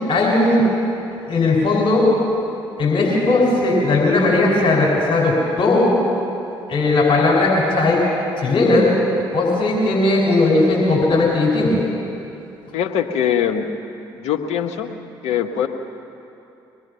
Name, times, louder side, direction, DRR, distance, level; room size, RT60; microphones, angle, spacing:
voice 1, 0.1-0.6 1.3-2.1 2.8-6.0 6.7-8.0 8.4-8.9 9.3-11.8, left 2 dB, 45° left, -3 dB, 5.5 m, -17 dB
voice 2, 12.7-13.7 14.1-14.9 15.2-15.7, left 9 dB, 70° left, 4 dB, 1.4 m, -22 dB
24.5 x 19.5 x 5.7 m, 2.8 s
hypercardioid pair, 50°, 12 cm